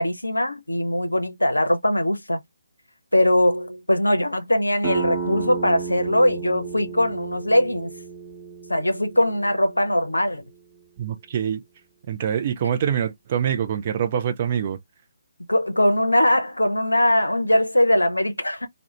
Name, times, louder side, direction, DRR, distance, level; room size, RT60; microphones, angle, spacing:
voice 1, 0.0-2.4 3.1-7.9 8.7-10.4 15.5-18.7, left 1 dB, 75° left, 0.6 m, -21 dB
sound 1, 4.8-10.2, right 5 dB, 15° right, 0.9 m, -33 dB
voice 2, 11.0-11.6 12.1-14.8, right 8 dB, 35° right, 0.4 m, -25 dB
2.3 x 2.1 x 2.9 m
figure-of-eight pair, 140°, 0 cm